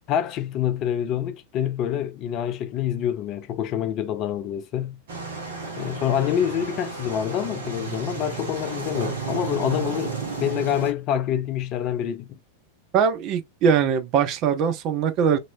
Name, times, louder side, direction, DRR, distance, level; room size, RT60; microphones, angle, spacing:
voice 1, 0.1-5.0 5.8-12.4, left 10 dB, 35° left, 0.4 m, -26 dB
sound 1, 5.1-10.9, right 5 dB, 60° right, 1.4 m, -32 dB
voice 2, 12.9-15.4, right 7 dB, 40° right, 0.7 m, -21 dB
2.9 x 2.8 x 2.5 m
figure-of-eight pair, 90°, 0 cm